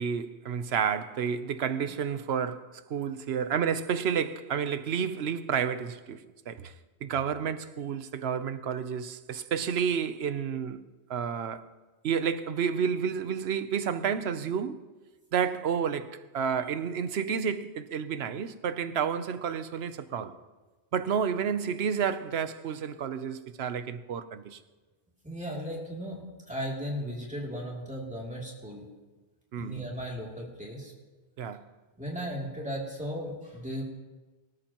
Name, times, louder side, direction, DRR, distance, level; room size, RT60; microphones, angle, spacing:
voice 1, 0.0-6.7 7.0-10.8 11.1-11.7 12.0-14.8 15.3-20.4 20.9-24.6 29.5-29.8 31.4-31.6, right 7 dB, 70° right, 0.9 m, -30 dB
voice 2, 25.2-26.2 26.5-28.9 29.6-30.9 32.0-33.8, equal, 5° right, 2.7 m, -36 dB
24.0 x 13.0 x 3.0 m
omnidirectional pair, 1.1 m